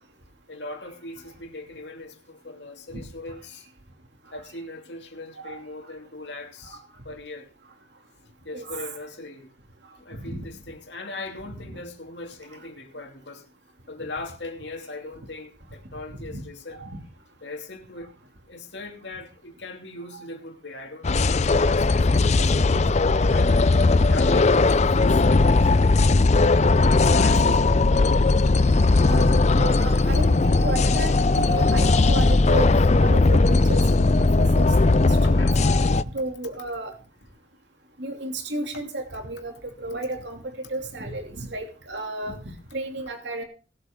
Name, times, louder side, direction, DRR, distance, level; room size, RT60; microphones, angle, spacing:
voice 1, 0.5-3.7 4.3-7.5 8.4-9.5 9.9-13.4 13.9-16.9 17.4-18.2 18.5-23.5 24.1-25.7 27.0-27.8 35.2-35.6 35.9-36.0, left 2 dB, 65° left, 2.7 m, -39 dB
voice 2, 8.5-8.9 10.2-10.5 11.7-11.8 16.3-16.4 16.8-17.0 20.1-20.2 29.1-32.7 33.0-35.3 36.1-36.9 38.0-39.5 39.8-43.4, right 2 dB, 70° right, 2.9 m, -33 dB
sound 1, 21.0-36.0, left 3 dB, 40° left, 0.5 m, -18 dB
20.0 x 8.2 x 3.8 m
head